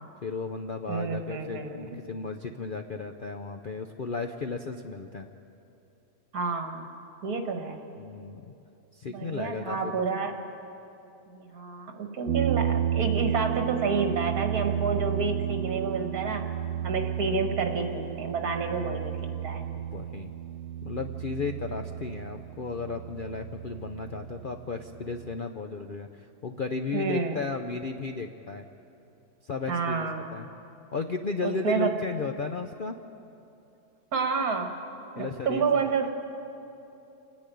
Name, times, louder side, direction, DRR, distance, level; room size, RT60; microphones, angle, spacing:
voice 1, 0.2-5.3 8.0-8.4 8.9-10.0 19.7-20.3 20.8-28.7 29.4-30.5 30.9-33.0 35.2-36.1, left 4 dB, 65° left, 5 dB, 0.5 m, -34 dB
voice 2, 0.9-2.0 6.3-6.9 7.2-7.8 9.1-10.3 11.3-16.5 16.8-19.2 19.4-19.7 26.9-27.4 29.7-30.2 31.4-31.9 34.1-34.7 35.2-36.1, right 4 dB, 65° right, 4 dB, 2.1 m, -29 dB
sound 1, 12.3-25.4, right 10 dB, 85° right, 1.3 m, -32 dB
27.5 x 10.5 x 9.2 m, 2.8 s
omnidirectional pair, 1.8 m